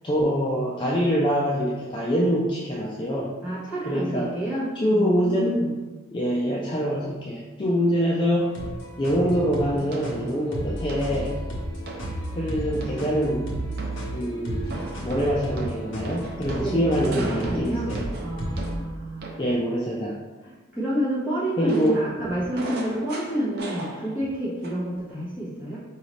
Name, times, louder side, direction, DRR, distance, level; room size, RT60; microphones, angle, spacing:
voice 1, 0.0-3.3 3.9-4.3 4.8-5.6 6.1-8.5 9.0-11.4 12.3-13.7 14.1-18.1 19.4-20.2 21.6-22.0, equal, 25° left, -5 dB, 0.4 m, -25 dB
voice 2, 3.4-5.7 16.6-19.3 20.4-25.8, right 1 dB, 5° right, -10 dB, 1.3 m, -29 dB
sound 1, 8.4-18.8, right 1 dB, 60° left, 1.0 m, -33 dB
sound 2, 9.9-10.3 10.9-11.3 11.9-12.1 12.8-13.4 13.8-14.1 14.7-19.6 21.7-24.3 24.6-25.0, right 2 dB, 50° right, 0.5 m, -38 dB
4.8 x 2.7 x 3.2 m, 1.2 s
head